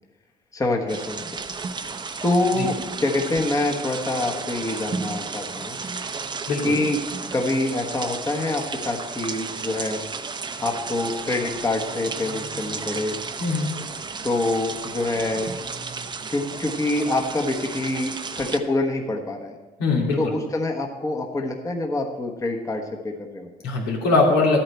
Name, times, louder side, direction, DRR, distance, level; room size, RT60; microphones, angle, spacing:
voice 1, 0.5-1.4 2.2-5.8 6.6-7.0 7.3-10.0 10.6-13.2 14.2-15.6 16.3-19.5 20.2-23.5, left 2 dB, 20° left, 1 dB, 1.3 m, -26 dB
sound 1, 0.9-18.6, right 4 dB, 25° right, 0.8 m, -33 dB
voice 2, 13.4-13.7 19.8-20.3 23.6-24.6, left 3 dB, 85° left, -2 dB, 2.9 m, -21 dB
12.5 x 8.8 x 4.4 m, 1.2 s
cardioid pair, 110°, 17 cm